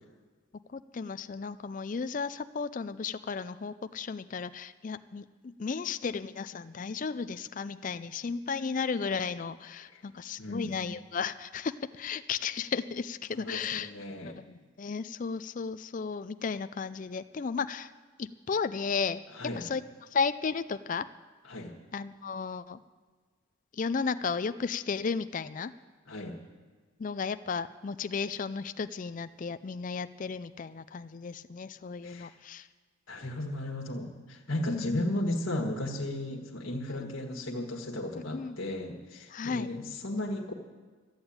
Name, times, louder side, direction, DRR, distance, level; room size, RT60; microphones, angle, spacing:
voice 1, 0.7-13.9 14.2-17.9 18.2-19.8 20.1-21.1 21.9-22.8 23.7-25.7 27.0-32.7 34.7-35.1 37.0-37.1 38.3-38.6 39.3-39.7, left 5 dB, 40° left, 12 dB, 0.4 m, -34 dB
voice 2, 10.4-10.9 13.4-14.4 19.3-19.6 21.4-21.7 26.1-26.4 32.0-32.3 33.1-40.5, left 1 dB, 80° left, 0 dB, 1.7 m, -35 dB
13.5 x 8.8 x 8.7 m, 1.5 s
head